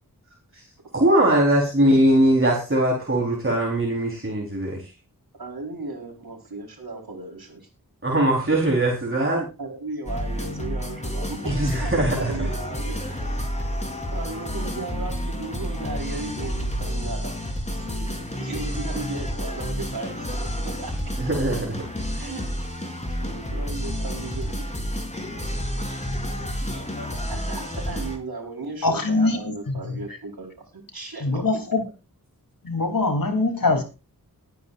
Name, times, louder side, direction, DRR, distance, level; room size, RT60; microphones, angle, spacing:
voice 1, 0.9-4.8 8.0-9.4 11.4-12.5 21.2-21.8, right 1 dB, 35° right, 4.4 m, -21 dB
voice 2, 5.4-7.7 9.3-13.2 13.5-13.7 14.1-17.3 17.7-20.9 22.2-22.7 23.1-24.6 27.3-31.4, right 3 dB, 85° right, 4.5 m, -36 dB
sound 1, 10.1-28.2, equal, 20° left, 4.2 m, -30 dB
voice 3, 28.8-29.4 29.7-29.8 31.2-31.8 32.6-33.8, left 3 dB, 65° left, 3.6 m, -22 dB
20.5 x 9.5 x 2.6 m
wide cardioid pair, 55°, 36 cm